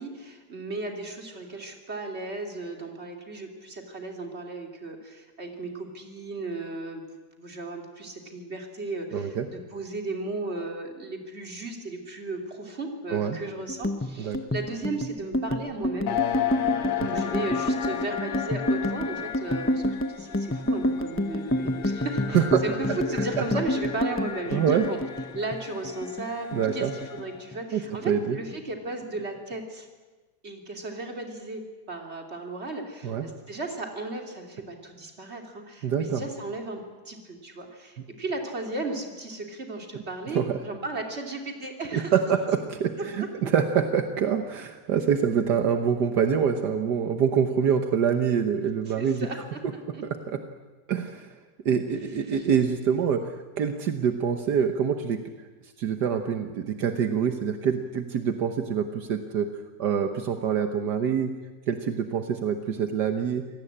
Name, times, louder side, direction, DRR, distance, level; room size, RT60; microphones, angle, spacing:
voice 1, 0.0-7.0 7.4-16.2 17.0-19.8 20.1-25.0 25.3-29.9 30.4-42.1 48.9-50.0 52.3-52.4, right 2 dB, 40° right, 2 dB, 3.3 m, -35 dB
voice 2, 9.1-9.5 13.1-13.4 14.2-14.4 17.0-17.1 22.3-22.6 23.4-23.5 24.5-24.9 26.5-27.0 27.7-28.4 33.0-33.3 35.8-36.2 40.3-40.6 41.9-49.3 50.3-50.4 50.9-51.4 51.7-55.2 55.8-59.5 59.8-61.3 61.7-63.4, right 7 dB, 75° right, 6 dB, 1.7 m, -25 dB
sound 1, 13.7-26.3 26.5-27.6 27.8-28.2 28.5-29.2, left 1 dB, 10° left, 0.6 m, -29 dB
sound 2, 16.1-27.5, left 11 dB, 80° left, 1.7 m, -34 dB
26.0 x 18.0 x 8.7 m, 1.3 s
omnidirectional pair, 1.8 m